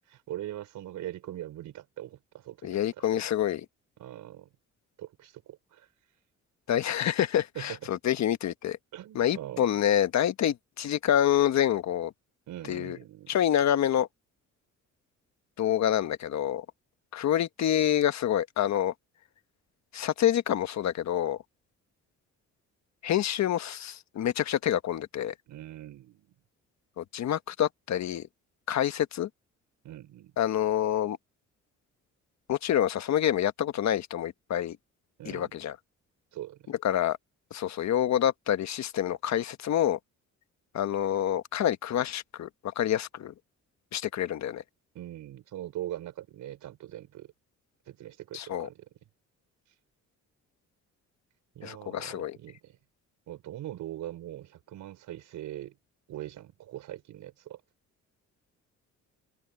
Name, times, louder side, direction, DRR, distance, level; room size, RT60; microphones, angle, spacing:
voice 1, 0.1-3.2 4.0-4.5 5.0-5.9 7.6-7.8 8.9-9.7 12.5-13.4 25.5-26.3 29.8-30.3 35.2-35.5 36.3-36.7 44.9-47.3 47.9-48.9 51.6-52.8 53.3-55.8 56.1-57.6, right 13 dB, 80° right, 5.4 m, -41 dB
voice 2, 2.6-3.6 6.7-8.8 9.1-12.1 12.7-13.0 13.3-14.1 15.6-16.6 17.1-18.9 19.9-21.4 23.0-25.3 27.0-28.3 28.7-29.3 30.4-31.2 32.5-34.8 35.2-35.7 36.8-37.2 37.5-40.0 40.7-42.5 42.8-43.3 43.9-44.6 48.3-48.7 51.6-52.4, left 10 dB, 65° left, 1.4 m, -27 dB
cardioid pair, 90°, 30 cm